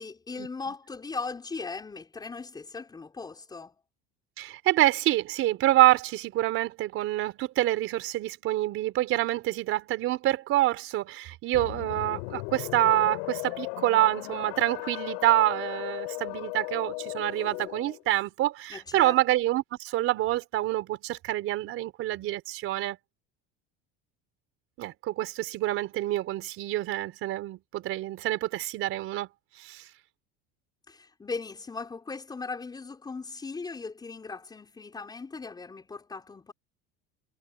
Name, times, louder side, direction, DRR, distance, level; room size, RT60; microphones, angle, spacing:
voice 1, 0.0-3.7 18.7-19.2 30.9-36.5, left 4 dB, 15° left, 5.4 m, -38 dB
voice 2, 4.4-23.0 24.8-29.3 29.6-29.8, right 15 dB, 50° right, 4.6 m, -27 dB
sound 1, 11.5-18.0, left 33 dB, 85° left, 7.8 m, -36 dB
cardioid pair, 160°, 29 cm